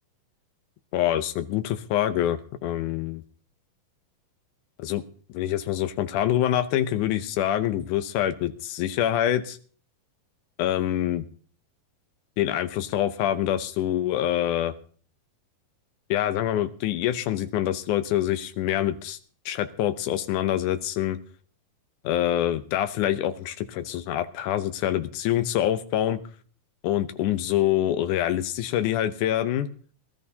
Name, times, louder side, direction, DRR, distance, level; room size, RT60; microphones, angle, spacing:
voice 1, 0.9-3.2 4.8-5.0 5.3-9.6 10.6-11.2 12.4-14.7 16.1-19.2 19.5-21.2 22.0-26.2 26.8-29.7, left 12 dB, 75° left, 9 dB, 2.1 m, -25 dB
22.5 x 13.0 x 2.8 m, 0.43 s
omnidirectional pair, 4.0 m